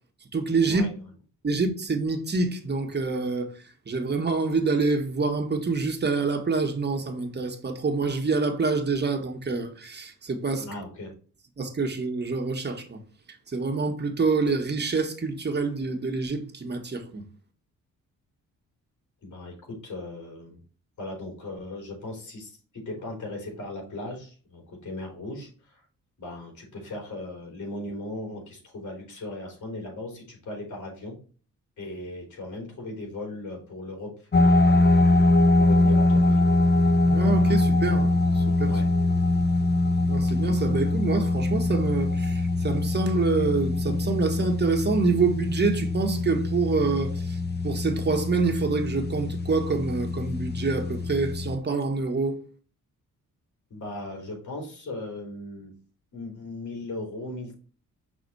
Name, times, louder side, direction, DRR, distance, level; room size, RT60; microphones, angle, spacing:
voice 1, 0.3-0.8 1.4-3.5 3.9-10.7 11.6-13.0 13.5-17.2 37.0-38.7 40.1-47.4 47.6-52.4, right 4 dB, 30° right, 1.5 m, -26 dB
voice 2, 10.6-11.1 19.2-20.6 21.0-25.8 26.2-31.2 31.8-34.7 35.6-36.4 38.6-38.9 53.7-55.7 56.1-57.5, left 2 dB, 60° left, 3.5 m, -38 dB
sound 1, 34.3-51.6, left 2 dB, 30° left, 0.7 m, -23 dB
6.0 x 4.2 x 4.1 m
cardioid pair, 90°, 33 cm